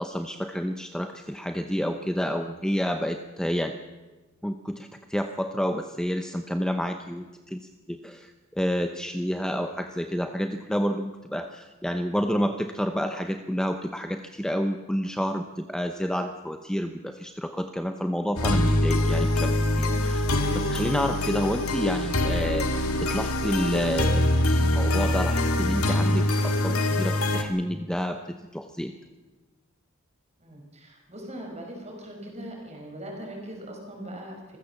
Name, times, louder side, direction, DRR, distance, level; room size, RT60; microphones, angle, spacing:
voice 1, 0.0-3.8 4.4-20.3 20.5-24.2 24.6-28.2 28.5-28.9, equal, 5° left, 6 dB, 0.8 m, -29 dB
sound 1, 18.4-27.4, left 1 dB, 85° left, 2.1 m, -24 dB
voice 2, 30.4-34.6, right 1 dB, 30° right, 1 dB, 5.6 m, -40 dB
26.5 x 15.5 x 7.2 m, 1.2 s
head